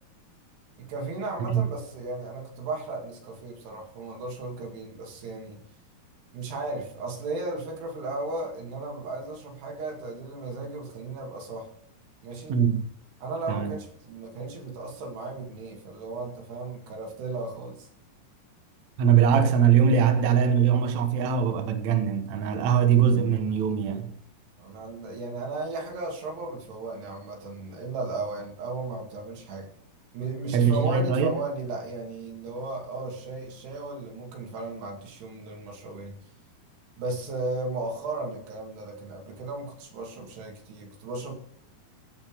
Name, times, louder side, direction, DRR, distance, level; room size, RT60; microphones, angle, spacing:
voice 1, 0.8-5.6 6.3-11.7 12.2-12.6 13.2-17.9 24.6-29.7 30.1-36.2 37.0-41.3, right 3 dB, 90° right, 4.4 m, -35 dB
voice 2, 12.5-12.8 13.5-13.7 19.0-24.1 30.5-31.3, right 7 dB, 60° right, 2.0 m, -22 dB
15.0 x 5.5 x 5.1 m
omnidirectional pair, 4.6 m